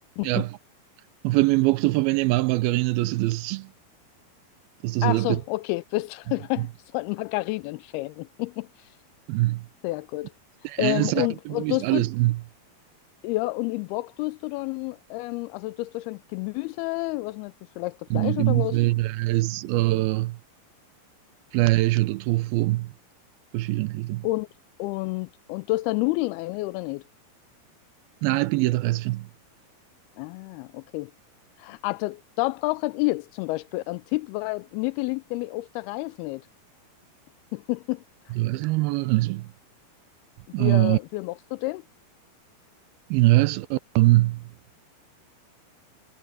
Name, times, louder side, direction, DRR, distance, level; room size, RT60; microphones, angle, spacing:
voice 1, 0.2-0.5 5.0-8.7 9.8-10.3 10.8-12.1 13.2-18.8 24.2-24.5 24.8-27.0 30.2-31.1 31.6-36.4 37.5-38.0 40.6-41.8, left 21 dB, 85° left, 2.5 m, -29 dB
voice 2, 1.2-3.7 4.8-5.4 9.3-9.7 10.6-11.3 11.6-12.4 18.1-20.4 21.5-22.9 23.5-24.3 28.2-29.3 38.4-39.5 40.5-41.0 43.1-44.4, right 19 dB, 80° right, 2.4 m, -23 dB
omnidirectional pair, 4.5 m